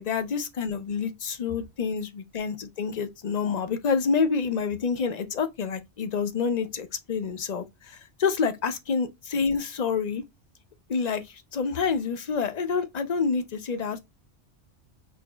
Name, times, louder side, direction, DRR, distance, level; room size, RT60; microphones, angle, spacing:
voice 1, 0.0-10.2 10.9-14.0, left 5 dB, 40° left, 0.7 m, -28 dB
6.1 x 2.8 x 2.4 m
omnidirectional pair, 1.2 m